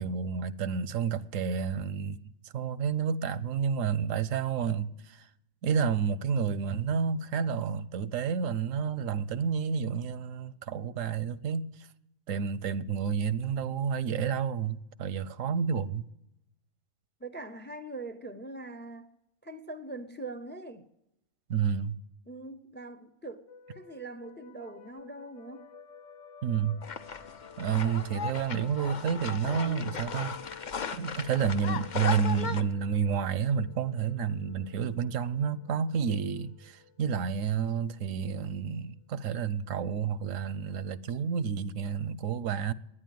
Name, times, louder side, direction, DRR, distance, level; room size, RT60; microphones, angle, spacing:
voice 1, 0.0-2.2 2.5-5.3 5.6-11.7 12.3-16.0 21.5-22.0 26.4-26.8 27.6-30.4 30.9-42.7, right 7 dB, 85° right, 1.1 m, -30 dB
voice 2, 17.2-19.1 19.4-20.9 22.3-25.7, right 2 dB, 15° left, 0.3 m, -42 dB
sound 1, 23.5-38.8, left 7 dB, 80° left, 1.2 m, -51 dB
sound 2, 26.8-32.6, left 6 dB, 45° left, 0.7 m, -37 dB
11.0 x 9.8 x 9.2 m
omnidirectional pair, 1.3 m